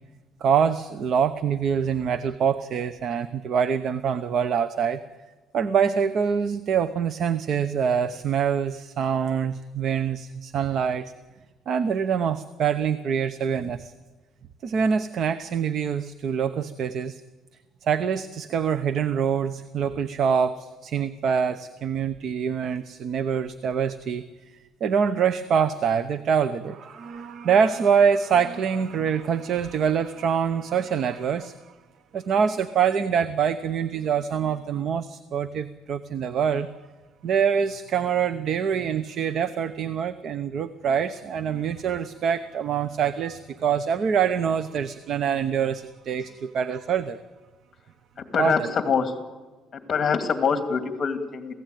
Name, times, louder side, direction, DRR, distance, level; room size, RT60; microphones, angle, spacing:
voice 1, 0.4-5.0 5.5-11.1 11.7-13.9 14.6-17.2 17.8-24.3 24.5-31.7 32.1-36.7 37.2-47.2 48.4-48.7, right 7 dB, 45° right, 13 dB, 0.8 m, -25 dB
voice 2, 48.2-49.1 49.7-51.5, left 6 dB, 30° left, 7 dB, 2.3 m, -25 dB
27.5 x 17.0 x 9.2 m, 1.3 s
cardioid pair, 155°, 0 cm